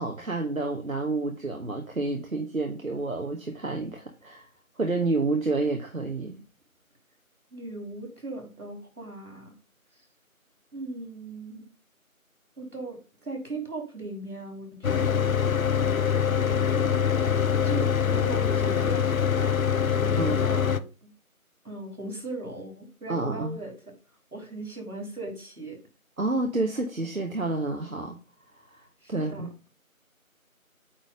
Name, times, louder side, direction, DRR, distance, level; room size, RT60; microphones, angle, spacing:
voice 1, 0.0-4.4 4.8-6.4 20.2-20.4 23.1-23.6 26.2-28.2 28.7-29.5, right 2 dB, 70° right, 2 dB, 1.3 m, -29 dB
voice 2, 7.5-9.5 10.7-11.7 12.6-15.3 16.4-17.0 17.6-21.1 21.6-23.7 24.3-25.8 29.0-29.5, right 2 dB, 90° right, 3 dB, 4.0 m, -38 dB
Mechanical fan, 14.8-20.8, left 7 dB, 70° left, 0.6 m, -24 dB
9.0 x 3.1 x 5.1 m, 0.32 s
figure-of-eight pair, 175°, 43 cm